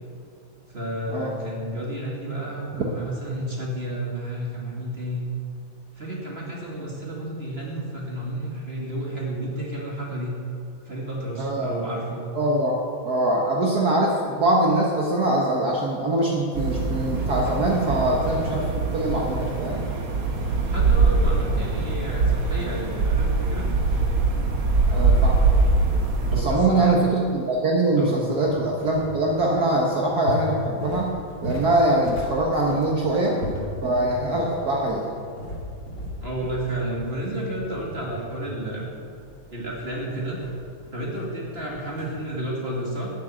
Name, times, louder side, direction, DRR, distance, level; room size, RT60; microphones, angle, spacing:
voice 1, 0.7-5.3 6.0-10.4 10.9-12.2 20.7-23.7 26.3-26.9 28.0-28.2 36.2-38.9 39.5-40.4 40.9-43.1, right 1 dB, 30° right, -3 dB, 2.6 m, -31 dB
voice 2, 11.4-11.8 12.3-12.8 13.0-19.9 24.9-25.7 26.3-33.4 33.8-35.1, right 2 dB, 50° right, -2 dB, 1.8 m, -23 dB
sound 1, 16.5-26.4, right 3 dB, 75° right, 2.5 m, -22 dB
sound 2, 28.0-42.3, left 1 dB, 35° left, 2.7 m, -37 dB
13.0 x 7.9 x 9.1 m, 2.4 s
omnidirectional pair, 2.2 m